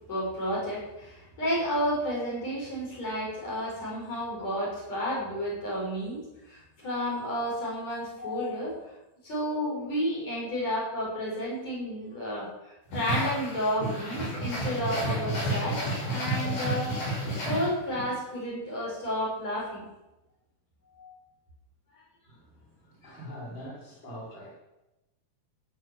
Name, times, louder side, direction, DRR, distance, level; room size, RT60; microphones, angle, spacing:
voice 1, 0.1-6.2 6.5-8.8 9.2-17.0 17.5-19.9 21.0-21.1, equal, 50° left, -5 dB, 8.0 m, -31 dB
sound 1, 12.9-18.1, equal, 80° left, 7.8 m, -31 dB
voice 2, 22.3-24.5, equal, 30° left, -5 dB, 5.9 m, -43 dB
17.5 x 9.5 x 7.5 m, 0.96 s
omnidirectional pair, 4.0 m